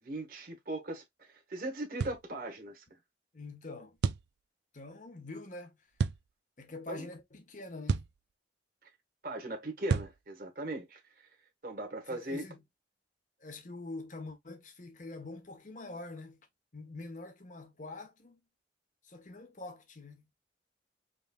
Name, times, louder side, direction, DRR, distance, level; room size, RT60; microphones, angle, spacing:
voice 1, 0.0-3.0 6.9-7.1 9.2-11.0 11.6-12.4, right 1 dB, 50° right, 1.3 m, -39 dB
sound 1, 2.0-2.2 4.0-4.3 6.0-6.2 7.9-8.2 9.9-10.2, right 5 dB, 65° right, 0.4 m, -30 dB
voice 2, 3.3-4.0 4.7-5.8 6.6-8.1 12.1-12.6 13.4-16.5 16.7-18.4 19.0-20.2, left 2 dB, 45° left, 1.1 m, -45 dB
5.3 x 3.3 x 2.2 m
head